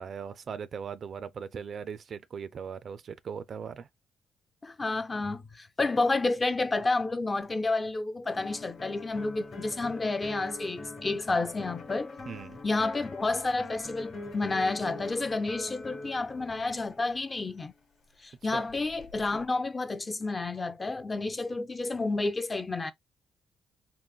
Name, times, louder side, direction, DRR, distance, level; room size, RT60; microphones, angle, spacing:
voice 1, 0.0-3.9 12.3-12.6 18.4-18.7, right 6 dB, 50° right, 0.3 m, -39 dB
voice 2, 4.6-12.1 12.6-17.7 18.2-22.9, left 3 dB, 25° left, 0.4 m, -30 dB
sound 1, 8.3-17.3 18.6-19.4, left 2 dB, 50° left, 1.0 m, -43 dB
3.8 x 2.1 x 2.3 m
cardioid pair, 90°, 0 cm